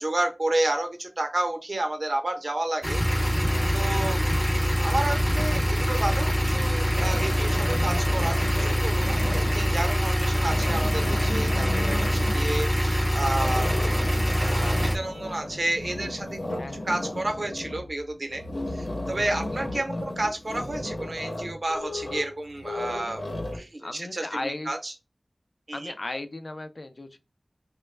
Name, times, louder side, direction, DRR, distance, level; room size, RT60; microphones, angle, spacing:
voice 1, 0.0-3.0 3.7-4.2 4.8-18.4 18.7-23.2 23.5-24.9 25.7-25.9, right 1 dB, 70° right, 0.8 m, -31 dB
sound 1, 2.8-15.0, equal, 5° left, 0.5 m, -24 dB
voice 2, 3.4-3.8 16.6-16.9 23.8-24.7 25.7-27.2, left 2 dB, 65° left, 0.5 m, -36 dB
sound 2, 6.1-6.5 6.8-9.9 10.3-12.5 13.3-23.6, left 1 dB, 90° left, 0.8 m, -35 dB
3.0 x 2.2 x 3.2 m
wide cardioid pair, 55°, 0 cm